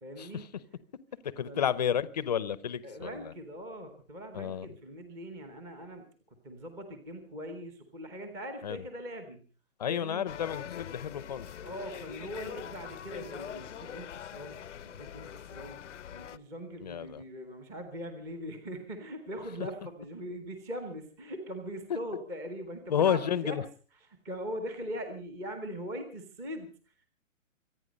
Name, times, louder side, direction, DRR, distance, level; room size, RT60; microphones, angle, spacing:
voice 1, 0.0-0.5 1.4-1.6 2.8-9.4 9.9-10.3 11.6-14.6 14.8-15.8 16.1-23.6 24.0-27.1, equal, 5° right, 6 dB, 0.9 m, -41 dB
voice 2, 1.2-3.1 4.3-4.7 8.6-8.8 9.8-11.5 16.8-17.2 21.9-22.0 22.9-23.6, left 9 dB, 30° left, 17 dB, 0.8 m, -31 dB
sound 1, 10.3-16.4, left 9 dB, 65° left, 0.8 m, -43 dB
25.0 x 9.4 x 5.3 m, 0.40 s
hypercardioid pair, 170°, 39 cm